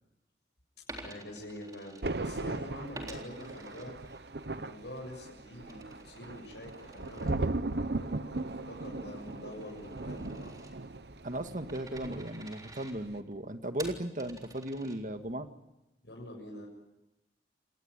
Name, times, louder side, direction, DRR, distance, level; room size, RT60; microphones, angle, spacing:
Coin (dropping), 0.8-2.5 2.9-4.5 4.9-15.4, right 2 dB, 20° right, 3.8 m, -51 dB
voice 1, 1.0-3.9 4.5-10.7 16.0-16.7, left 1 dB, 80° left, -1 dB, 7.2 m, -46 dB
Thunder, 2.0-12.6 12.9-13.2, right 2 dB, 70° right, 1.0 m, -38 dB
voice 2, 11.2-15.5, right 1 dB, 45° right, 7 dB, 1.8 m, -36 dB
29.0 x 18.5 x 9.9 m, 0.96 s
head